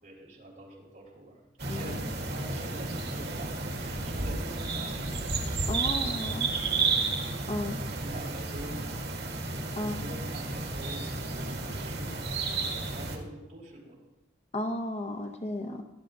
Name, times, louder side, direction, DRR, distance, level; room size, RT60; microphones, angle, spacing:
voice 1, 0.0-1.3 1.6-5.4 5.8-6.0 7.9-8.9 9.8-11.1 11.6-14.0, right 1 dB, 45° right, -4 dB, 4.2 m, -45 dB
sound 1, 1.6-13.2, right 3 dB, 70° right, 2.0 m, -32 dB
voice 2, 5.7-6.5 7.5-7.8 9.8-10.0 14.5-15.8, left 1 dB, 35° left, 5 dB, 0.8 m, -33 dB
18.0 x 11.5 x 2.6 m, 0.95 s
head